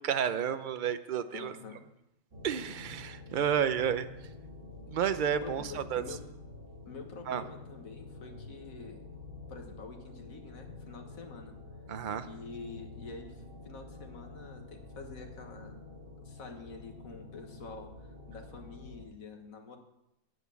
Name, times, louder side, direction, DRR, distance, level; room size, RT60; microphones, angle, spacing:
voice 1, 0.0-1.5 2.4-4.1 4.9-6.0 7.3-7.4 11.9-12.3, right 8 dB, 50° right, 11 dB, 0.6 m, -31 dB
voice 2, 1.3-1.8 5.3-6.2 6.9-9.0 9.5-11.5 12.3-15.8 16.2-19.8, left 4 dB, 80° left, 3 dB, 1.9 m, -47 dB
sound 1, 2.3-19.0, left 3 dB, 70° right, 2.7 m, -48 dB
9.0 x 8.4 x 6.9 m, 0.88 s
omnidirectional pair, 1.4 m